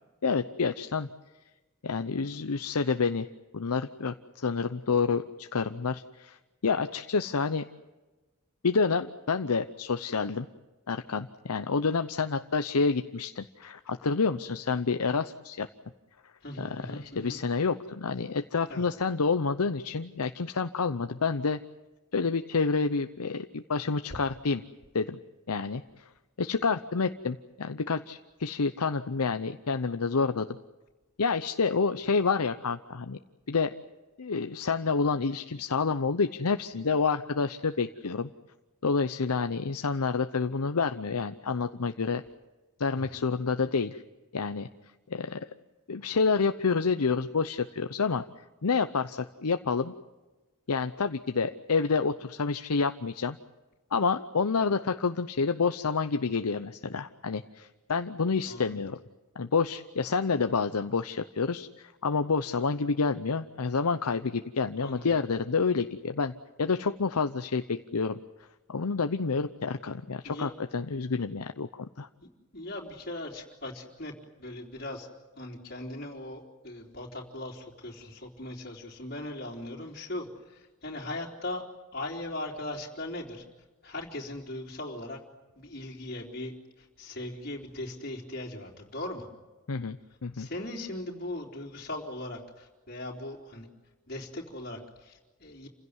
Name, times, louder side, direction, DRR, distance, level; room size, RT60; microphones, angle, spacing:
voice 1, 0.2-1.1 1.8-3.3 3.5-6.4 6.6-7.6 8.6-10.5 10.9-15.7 16.6-21.6 22.1-24.6 24.9-25.2 25.5-26.0 26.4-30.5 31.2-33.2 33.5-33.7 34.2-38.3 38.8-42.2 42.8-44.0 44.3-44.7 45.1-45.5 45.9-48.2 48.6-49.9 50.7-53.4 53.9-59.0 59.4-66.3 66.6-68.2 68.7-72.1 89.7-90.5, left 4 dB, 80° left, 8 dB, 0.8 m, -28 dB
voice 2, 16.4-17.4 18.7-18.8 43.0-43.2 58.5-58.8 64.8-65.1 70.2-70.5 72.5-74.1 74.4-75.1 75.4-81.6 81.9-83.4 83.8-85.2 85.6-89.3 90.3-93.7 94.1-95.7, left 1 dB, 45° left, -4 dB, 3.6 m, -39 dB
28.5 x 16.5 x 9.7 m, 1.2 s
head